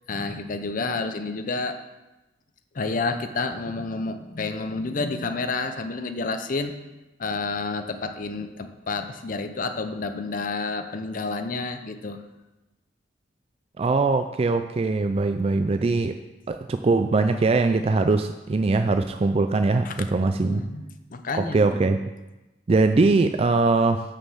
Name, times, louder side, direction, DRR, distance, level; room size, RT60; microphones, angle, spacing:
voice 1, 0.1-1.8 2.7-6.7 7.2-12.2 19.8-20.0 20.4-21.6, left 3 dB, 45° left, 7 dB, 0.6 m, -29 dB
voice 2, 13.8-16.2 16.5-20.6 21.3-22.0 22.7-24.0, right 3 dB, 35° right, 8 dB, 0.3 m, -21 dB
6.4 x 6.3 x 7.4 m, 1.0 s
head